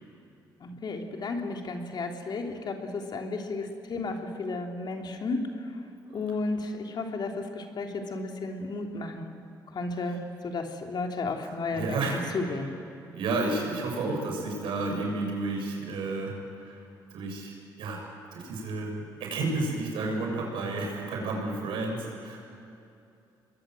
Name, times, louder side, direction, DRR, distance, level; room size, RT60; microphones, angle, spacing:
voice 1, 0.6-9.3 9.7-12.0 12.3-12.7, left 3 dB, 55° left, 3 dB, 3.0 m, -33 dB
voice 2, 11.4-12.2 13.1-16.8 17.1-18.0 18.3-22.4, right 2 dB, 75° right, 0 dB, 6.5 m, -31 dB
27.0 x 21.5 x 7.8 m, 2.6 s
supercardioid pair, 60°, 9 cm